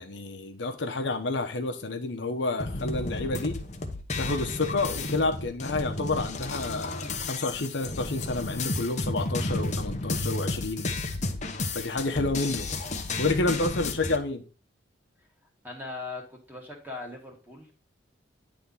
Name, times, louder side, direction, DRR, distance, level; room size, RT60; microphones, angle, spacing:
voice 1, 0.0-3.6 4.2-10.9 11.7-12.7 13.2-14.4, left 2 dB, 70° left, 1.0 m, -29 dB
sound 1, 2.6-14.2, left 2 dB, 40° left, 0.9 m, -32 dB
voice 2, 15.6-17.7, left 3 dB, 10° right, 1.9 m, -39 dB
10.0 x 3.5 x 5.5 m
head